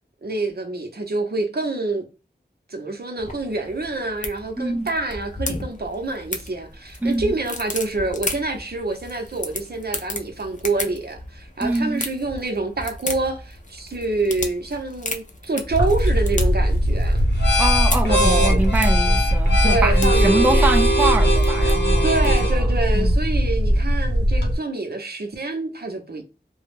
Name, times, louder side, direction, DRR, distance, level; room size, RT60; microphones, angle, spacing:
voice 1, 0.2-2.0 2.7-17.2 18.1-18.6 19.6-20.7 22.0-26.2, right 3 dB, 60° right, 0.6 m, -27 dB
sound 1, 3.2-22.6, left 2 dB, 45° left, 0.5 m, -35 dB
voice 2, 4.6-4.9 7.0-7.3 11.6-12.0 17.6-22.1 22.6-22.7 22.9-23.1, right 2 dB, 10° right, 0.3 m, -24 dB
sound 2, 15.7-24.5, equal, 80° left, 0.8 m, -18 dB
2.2 x 2.0 x 3.1 m
wide cardioid pair, 45°, 18 cm